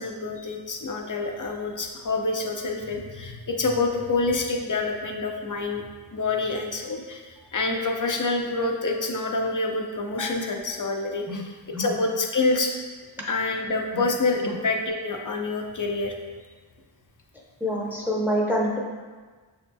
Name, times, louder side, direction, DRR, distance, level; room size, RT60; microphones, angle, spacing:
voice 1, 0.0-5.9 6.1-12.7 13.3-16.1, left 3 dB, 40° left, 2 dB, 0.6 m, -27 dB
voice 2, 17.6-18.8, equal, 5° right, -3 dB, 0.7 m, -26 dB
6.4 x 2.7 x 2.2 m, 1.4 s
wide cardioid pair, 45°, 48 cm